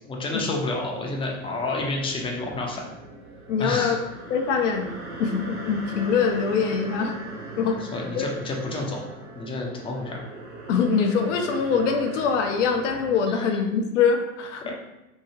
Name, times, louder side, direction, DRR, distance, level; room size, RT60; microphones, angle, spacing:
voice 1, 0.1-2.9 3.6-4.0 7.9-9.0 9.4-10.3 13.3-13.6 14.6-14.7, left 2 dB, 15° left, 0 dB, 0.5 m, -29 dB
sound 1, 1.3-13.2, right 2 dB, 55° right, 1.2 m, -40 dB
voice 2, 3.5-4.0 4.3-4.9 5.2-7.1 7.6-7.8 8.1-8.2 10.7-14.7, left 6 dB, 60° left, 5 dB, 0.6 m, -23 dB
2.8 x 2.7 x 2.7 m, 0.98 s
figure-of-eight pair, 80°, 42 cm